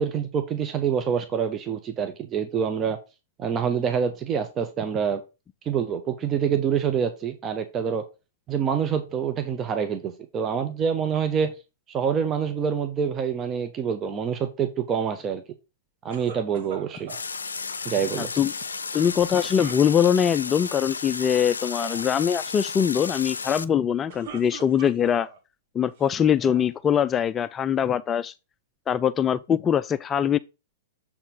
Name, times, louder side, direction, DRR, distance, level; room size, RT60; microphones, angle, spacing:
voice 1, 0.0-3.0 3.4-5.2 5.6-8.0 8.5-11.5 11.9-15.4 16.0-17.1 17.8-18.3, right 7 dB, 25° right, 0.9 m, -26 dB
sound 1, 16.1-17.2 19.0-20.3 21.0-21.3 21.6-22.0 23.8-25.4 26.0-26.7, right 6 dB, 50° right, 1.9 m, -42 dB
sound 2, 17.1-23.6, left 4 dB, 75° left, 0.5 m, -33 dB
voice 2, 18.2-18.5 18.9-25.3 25.7-28.3 28.9-30.4, left 8 dB, 20° left, 0.3 m, -22 dB
7.2 x 4.3 x 5.2 m
figure-of-eight pair, 105°, 0 cm